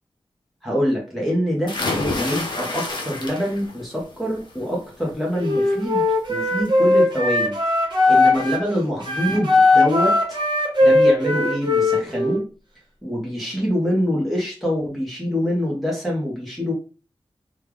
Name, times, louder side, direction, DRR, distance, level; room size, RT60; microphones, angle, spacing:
voice 1, 0.6-1.8 2.0-6.0 6.3-7.6 7.8-10.2 10.8-12.4 13.0-16.7, equal, ahead, -4 dB, 1.1 m, -25 dB
sound 1, 1.7-3.8 4.2-4.6 6.0-6.1 6.5-6.6, left 2 dB, 50° left, 0.8 m, -27 dB
Wind instrument woodwind instrument, 5.4-8.7 9.0-12.4, left 2 dB, 45° right, 1.1 m, -18 dB
3.1 x 2.4 x 3.5 m, 0.33 s
wide cardioid pair, 95°, 10 cm